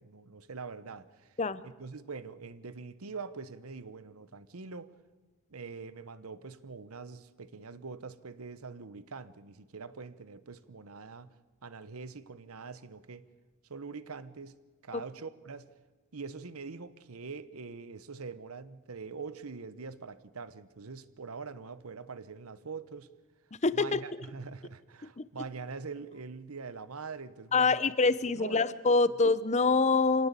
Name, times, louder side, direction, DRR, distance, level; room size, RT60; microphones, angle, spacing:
voice 1, 0.0-1.4 1.6-4.9 5.5-11.3 11.6-13.2 13.7-14.6 14.8-15.7 16.1-23.1 23.7-27.9 28.2-28.7 29.1-29.2, right 4 dB, 90° right, 15 dB, 1.0 m, -44 dB
voice 2, 23.6-24.0 25.2-25.3 27.5-30.3, left 4 dB, 35° left, 16 dB, 0.7 m, -25 dB
25.0 x 17.5 x 8.3 m, 1.3 s
head